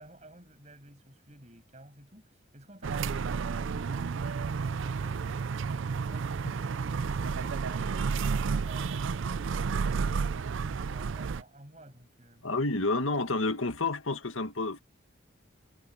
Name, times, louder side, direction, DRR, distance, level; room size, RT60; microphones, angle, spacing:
voice 1, 0.0-6.9 7.2-10.1 10.6-12.5, right 1 dB, 35° right, 7.7 m, -52 dB
sound 1, 2.8-11.4, right 5 dB, 75° right, 0.4 m, -31 dB
voice 2, 12.4-14.8, left 3 dB, 85° left, 1.8 m, -29 dB
head